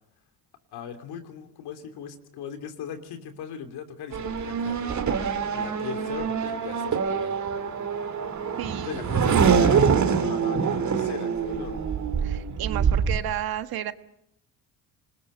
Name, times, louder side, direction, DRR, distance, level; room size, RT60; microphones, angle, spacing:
voice 1, 0.7-7.4 8.8-11.8, left 8 dB, 70° left, 7 dB, 3.1 m, -39 dB
Race car auto racing / Accelerating revving vroom, 4.1-13.2, right 6 dB, 45° right, 2.6 m, -25 dB
voice 2, 8.6-9.3 12.2-13.9, right 12 dB, 65° right, 10 dB, 1.5 m, -33 dB
27.0 x 20.5 x 6.7 m, 0.77 s
supercardioid pair, 80°, 40 cm